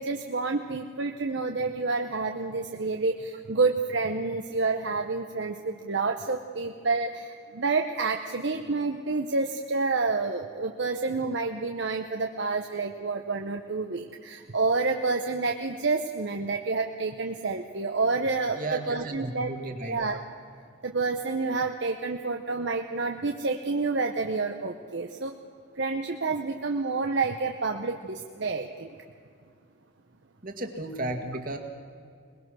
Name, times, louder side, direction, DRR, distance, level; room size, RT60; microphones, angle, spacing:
voice 1, 0.0-19.5 19.8-20.2 20.8-25.3 25.8-28.9, right 3 dB, 55° right, 4 dB, 0.9 m, -29 dB
voice 2, 18.6-20.0 30.4-31.6, right 2 dB, 40° right, 5 dB, 2.0 m, -34 dB
22.0 x 21.0 x 6.2 m, 2.3 s
head